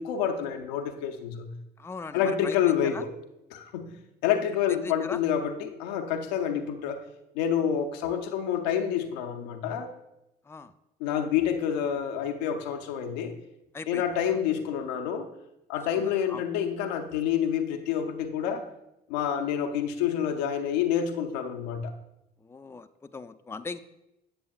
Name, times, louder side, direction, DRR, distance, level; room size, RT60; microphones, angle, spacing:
voice 1, 0.0-1.5 2.1-3.1 3.5-3.9 4.2-7.0 7.3-9.9 11.0-13.3 13.9-15.3 15.7-18.6 19.1-21.9, left 9 dB, 85° left, 6 dB, 0.6 m, -28 dB
voice 2, 1.8-3.0 4.7-5.2 10.4-10.7 13.7-14.4 15.9-16.5 22.4-23.8, left 4 dB, 10° left, 10 dB, 0.4 m, -40 dB
8.5 x 6.9 x 2.4 m, 0.88 s
hypercardioid pair, 55°, 21 cm